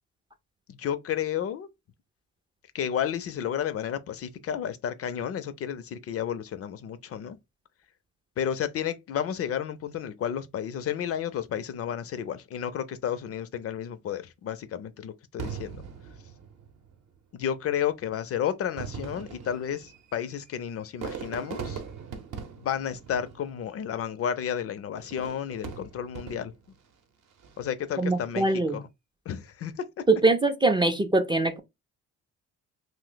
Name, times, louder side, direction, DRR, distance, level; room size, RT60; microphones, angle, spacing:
voice 1, 0.7-1.7 2.7-7.4 8.4-15.8 17.3-21.8 22.6-26.5 27.6-28.5 28.7-28.9 29.3-29.7, left 9 dB, 50° left, 0.4 m, -32 dB
Fireworks, 15.4-17.0 17.9-18.0 18.6-23.9 25.0-26.8 27.3-27.8, right 6 dB, 60° right, 0.7 m, -40 dB
voice 2, 28.0-28.8 30.1-31.6, right 2 dB, 15° right, 0.3 m, -23 dB
2.5 x 2.0 x 3.8 m
cardioid pair, 90°, 30 cm